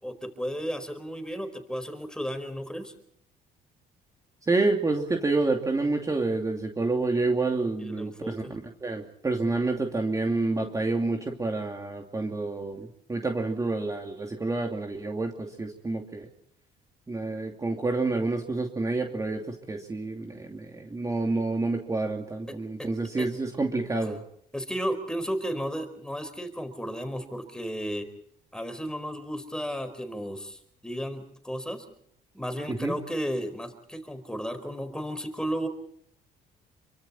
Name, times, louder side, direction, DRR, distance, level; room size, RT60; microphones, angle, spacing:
voice 1, 0.0-2.9 7.8-8.5 22.5-22.9 23.2-23.3 24.0-24.1 24.5-28.1 28.5-31.8 32.3-35.7, equal, 5° left, 9 dB, 4.6 m, -34 dB
voice 2, 4.5-16.3 17.1-24.2 32.7-32.9, right 3 dB, 20° right, 2 dB, 2.8 m, -28 dB
28.0 x 24.5 x 4.4 m, 0.71 s
cardioid pair, 110°, 17 cm